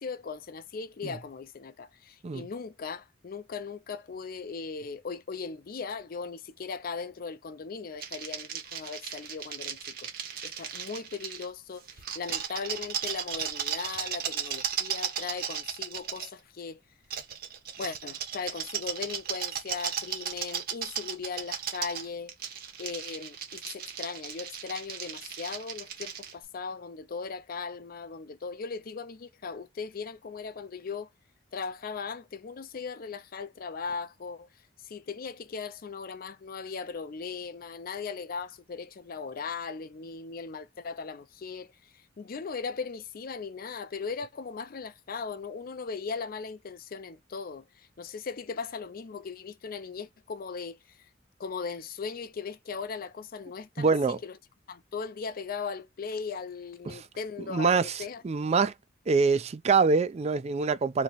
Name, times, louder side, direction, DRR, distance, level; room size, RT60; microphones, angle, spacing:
voice 1, 0.0-16.8 17.8-22.4 22.8-31.1 31.5-34.5 34.8-41.7 42.2-51.0 51.4-53.9 54.2-54.4 54.7-58.2, left 5 dB, 50° left, 0.4 m, -38 dB
sound 1, 8.0-11.5 11.9-16.3 17.1-26.3, right 8 dB, 50° right, 1.1 m, -36 dB
voice 2, 53.8-54.2 56.9-57.0 57.5-58.7 59.1-61.0, right 4 dB, 35° right, 0.4 m, -25 dB
3.1 x 2.8 x 3.9 m
head